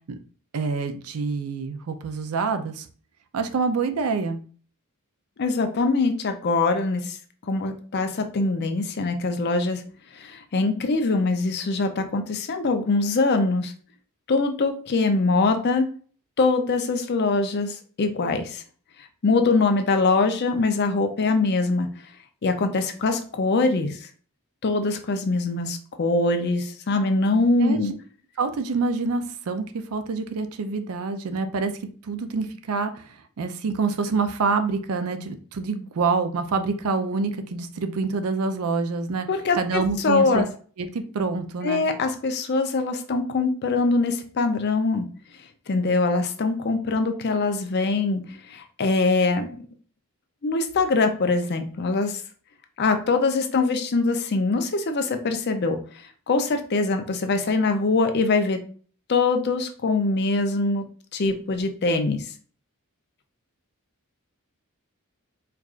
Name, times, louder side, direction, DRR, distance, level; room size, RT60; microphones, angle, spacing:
voice 1, 0.5-2.9 3.3-4.4 27.6-27.9 28.4-31.7 32.0-39.3 39.6-40.4 40.8-41.9, right 4 dB, 75° right, 8 dB, 0.5 m, -26 dB
voice 2, 5.4-7.2 7.5-9.8 10.2-13.7 14.3-15.9 16.4-18.6 19.2-21.9 22.4-24.0 24.6-27.9 39.3-40.5 41.6-45.1 45.7-48.2 48.5-49.5 50.4-52.2 52.8-55.8 56.3-58.6 59.1-60.8 61.1-62.2, left 3 dB, 50° left, 7 dB, 0.5 m, -23 dB
4.5 x 2.4 x 2.4 m, 0.42 s
head